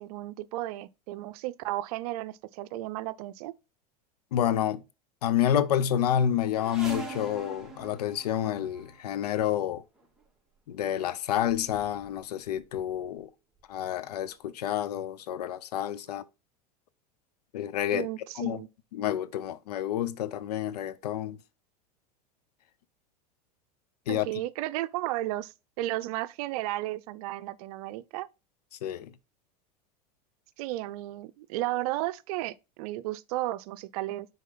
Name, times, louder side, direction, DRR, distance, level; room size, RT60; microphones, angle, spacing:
voice 1, 0.0-3.5 17.9-18.7 24.1-28.3 30.6-34.3, right 16 dB, 70° right, 0.6 m, -34 dB
voice 2, 4.3-4.8 5.2-9.8 10.7-13.3 13.7-16.2 17.5-18.1 18.4-18.6 18.9-21.4 24.1-24.3 28.8-29.1, left 10 dB, 90° left, 0.6 m, -29 dB
sound 1, 6.5-9.0 10.0-10.2 11.0-11.1 11.3-12.2 12.5-13.1 13.8-13.9 14.2-14.3, right 4 dB, 5° right, 1.9 m, -43 dB
6.3 x 4.3 x 3.9 m
hypercardioid pair, 105°, 20 cm